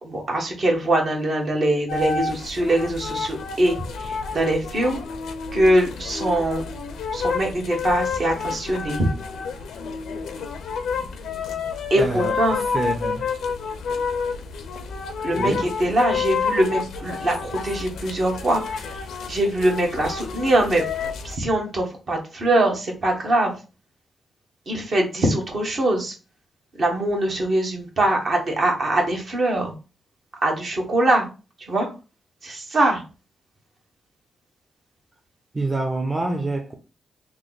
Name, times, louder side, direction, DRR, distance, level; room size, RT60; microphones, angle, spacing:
voice 1, 0.0-5.0 5.5-6.6 7.1-9.1 11.9-12.6 15.2-15.5 15.8-18.8 19.3-20.8 21.2-23.5 24.7-26.1 26.8-29.7 30.4-31.3 31.7-31.9 32.4-33.0, right 1 dB, 55° right, 1.2 m, -22 dB
sound 1, 1.9-21.4, left 5 dB, 85° left, 0.4 m, -29 dB
voice 2, 11.9-13.3 15.4-15.6 35.5-36.7, right 2 dB, 25° right, 0.6 m, -26 dB
3.1 x 2.1 x 3.8 m
cardioid pair, 65°, 0 cm